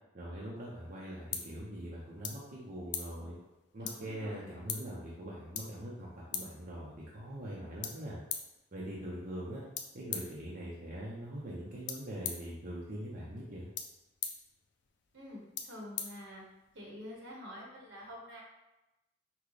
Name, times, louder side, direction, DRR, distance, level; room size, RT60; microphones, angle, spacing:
voice 1, 0.1-3.4 3.7-8.2 8.7-9.6 9.9-13.7, right 1 dB, 50° right, -6 dB, 0.8 m, -42 dB
sound 1, 0.6-16.8, left 7 dB, 65° left, 0.5 m, -45 dB
voice 2, 3.7-4.6 15.1-16.4 16.7-18.4, left 1 dB, 70° right, -3 dB, 1.2 m, -47 dB
6.0 x 2.3 x 3.3 m, 0.98 s
head